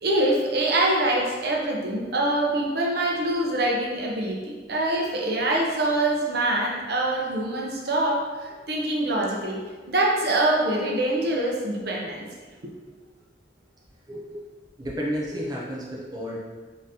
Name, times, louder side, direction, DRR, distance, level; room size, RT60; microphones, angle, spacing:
voice 1, 0.0-9.6 9.9-12.3 12.6-12.7, right 1 dB, 60° right, -2 dB, 0.7 m, -24 dB
voice 2, 14.1-14.4 14.8-16.4, equal, 25° right, -3 dB, 0.5 m, -31 dB
3.9 x 3.8 x 2.7 m, 1.3 s
head